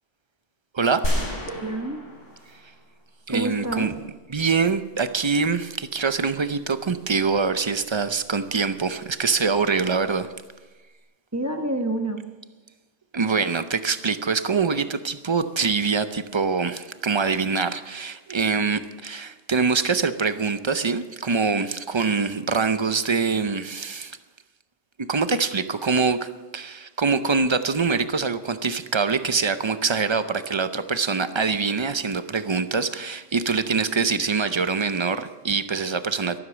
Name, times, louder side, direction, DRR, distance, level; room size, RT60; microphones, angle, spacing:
voice 1, 0.7-1.1 3.3-3.9 4.3-10.3 13.1-24.2 25.1-26.3 26.5-36.4, right 5 dB, 30° right, 11 dB, 0.5 m, -24 dB
sound 1, 1.0-3.0 3.3-3.4, equal, 90° left, 5.6 m, -29 dB
voice 2, 1.4-2.0 3.3-3.9 11.3-12.2, right 1 dB, 15° right, 4 dB, 1.2 m, -28 dB
13.0 x 12.5 x 6.3 m, 1.2 s
omnidirectional pair, 1.2 m